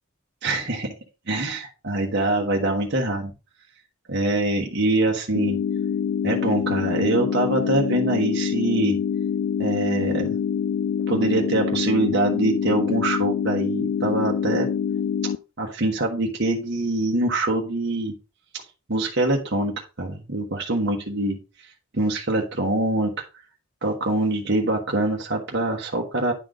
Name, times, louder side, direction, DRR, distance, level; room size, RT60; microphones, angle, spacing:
voice 1, 0.4-0.9 1.3-3.3 4.1-5.6 6.2-9.0 9.6-10.3 11.1-14.7 15.2-15.3 15.6-18.1 18.9-23.1 23.8-26.3, right 2 dB, 55° right, 1 dB, 1.2 m, -24 dB
sound 1, 5.3-15.4, left 7 dB, 65° left, 0.3 m, -25 dB
10.5 x 3.9 x 4.8 m, 0.31 s
head